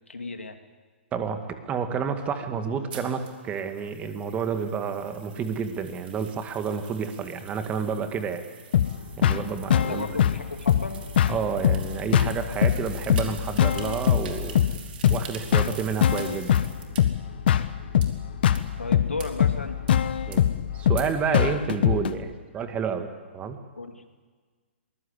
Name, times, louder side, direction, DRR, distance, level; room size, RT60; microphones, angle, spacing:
voice 1, 0.1-0.6 9.9-11.0 18.8-19.8 23.8-24.0, left 3 dB, 90° left, 6 dB, 2.4 m, -34 dB
voice 2, 1.1-8.4 9.2-10.1 11.3-14.6 15.1-16.5 20.3-20.4 20.7-23.1 23.3-23.6, right 6 dB, 20° right, 7 dB, 2.1 m, -30 dB
sound 1, 2.9-17.0 17.5-17.6 18.0-18.1 18.6-18.7 19.2-19.3 19.9-20.0 20.3-20.4 21.0-21.1, right 7 dB, 55° right, 3.9 m, -45 dB
sound 2, 8.7-22.1, left 10 dB, 55° left, 1.2 m, -23 dB
23.0 x 20.0 x 8.4 m, 1.5 s
figure-of-eight pair, 125°, 7 cm